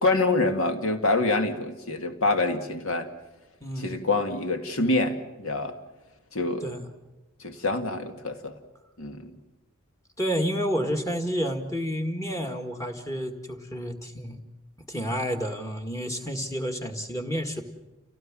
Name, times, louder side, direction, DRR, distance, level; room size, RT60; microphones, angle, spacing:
voice 1, 0.0-3.1 3.8-5.8 6.3-6.7 7.4-8.6 9.0-9.3, left 2 dB, 65° left, 7 dB, 2.2 m, -26 dB
voice 2, 3.6-4.0 6.6-6.8 10.2-14.4 14.9-17.6, equal, 15° left, 5 dB, 1.9 m, -30 dB
29.0 x 17.5 x 7.5 m, 1.1 s
head